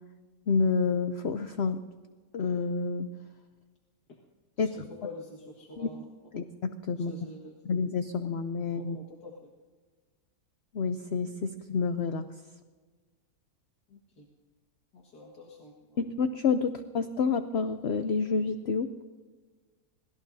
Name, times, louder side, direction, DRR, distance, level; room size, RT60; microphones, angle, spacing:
voice 1, 0.5-1.8 2.3-3.1 4.6-4.8 5.8-5.9 6.3-7.1 7.7-9.0 10.7-12.3 16.0-19.0, left 5 dB, 55° left, 9 dB, 0.7 m, -29 dB
voice 2, 4.6-6.0 6.9-7.7 8.8-9.5 13.9-14.3 14.9-16.0, left 2 dB, 75° left, -2 dB, 2.3 m, -47 dB
26.5 x 19.5 x 2.7 m, 1.4 s
omnidirectional pair, 1.7 m